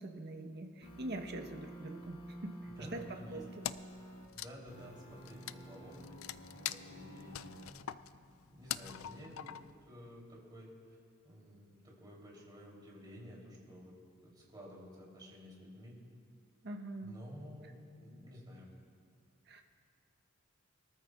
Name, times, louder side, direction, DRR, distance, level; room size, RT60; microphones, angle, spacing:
voice 1, 0.0-3.0 3.3-3.4 16.6-17.2 19.5-19.6, right 2 dB, 55° right, 4 dB, 1.0 m, -44 dB
sound 1, 0.8-4.3 4.7-7.7, equal, 90° left, 2.0 m, -50 dB
voice 2, 2.8-3.4 4.3-6.0 6.5-7.5 8.2-9.5 9.9-10.7 11.2-13.9 14.2-16.0 17.0-18.7, equal, 20° right, -4 dB, 3.2 m, -52 dB
Wood, 3.6-4.0 4.3-9.9, left 12 dB, 75° left, 0.4 m, -43 dB
23.5 x 14.0 x 2.4 m, 2.3 s
head